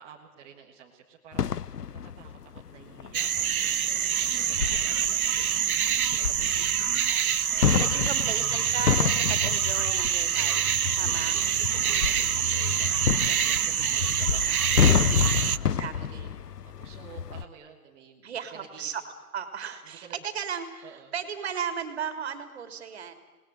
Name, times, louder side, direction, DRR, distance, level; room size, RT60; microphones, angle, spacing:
voice 1, 0.0-6.8 7.5-7.8 8.1-8.4 11.0-16.5 16.8-18.9 19.9-20.1 20.8-21.1, right 7 dB, 15° right, -2 dB, 1.7 m, -51 dB
sound 1, 1.3-2.7 3.0-17.4, left 7 dB, 90° left, 0.9 m, -29 dB
sound 2, 3.1-15.6, right 9 dB, 65° right, 0.9 m, -26 dB
voice 2, 7.8-10.7 11.0-11.4 12.2-12.5 14.7-15.2 15.8-16.3 18.2-19.0 19.3-23.1, right 7 dB, 45° right, 9 dB, 3.3 m, -36 dB
27.0 x 20.0 x 9.3 m, 1.3 s
hypercardioid pair, 155°, 46 cm